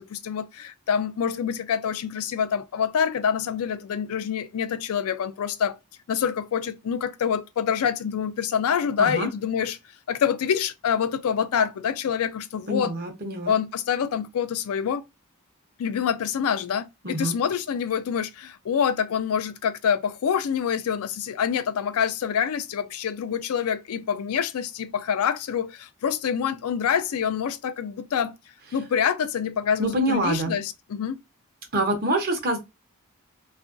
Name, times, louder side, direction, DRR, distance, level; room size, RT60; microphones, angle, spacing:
voice 1, 0.0-5.7 6.1-9.8 10.1-12.9 13.5-15.0 15.8-28.3 28.7-31.2, left 7 dB, 75° left, 0.4 m, -26 dB
voice 2, 12.7-13.5 17.0-17.3 29.8-30.5 31.7-32.6, right 1 dB, 40° right, 0.7 m, -25 dB
2.7 x 2.4 x 2.5 m
head